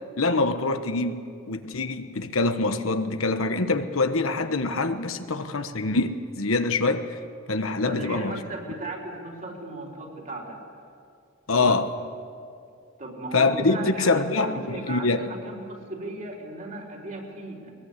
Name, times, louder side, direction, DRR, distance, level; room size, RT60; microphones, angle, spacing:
voice 1, 0.2-7.2 7.5-8.4 11.5-11.9 13.3-15.3, left 3 dB, 80° left, 8 dB, 1.2 m, -25 dB
voice 2, 7.8-10.6 11.5-11.7 13.0-17.7, right 2 dB, 40° right, 0 dB, 4.2 m, -36 dB
22.0 x 21.0 x 8.3 m, 2.3 s
head